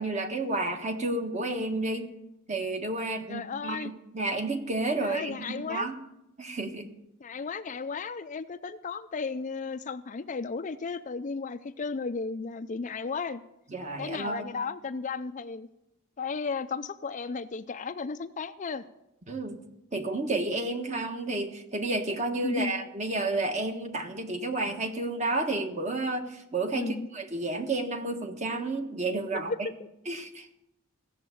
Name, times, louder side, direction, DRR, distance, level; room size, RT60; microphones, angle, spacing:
voice 1, 0.0-2.1 2.5-6.0 6.4-6.9 13.7-14.4 19.3-19.6 19.9-29.7 30.1-30.5, right 2 dB, 35° right, 5 dB, 1.4 m, -31 dB
voice 2, 3.3-3.9 5.0-5.9 7.2-13.4 14.0-15.7 16.2-18.8 22.4-22.7 26.7-27.1 29.3-29.9, left 4 dB, 35° left, 11 dB, 0.4 m, -34 dB
15.5 x 7.2 x 8.4 m, 0.87 s
head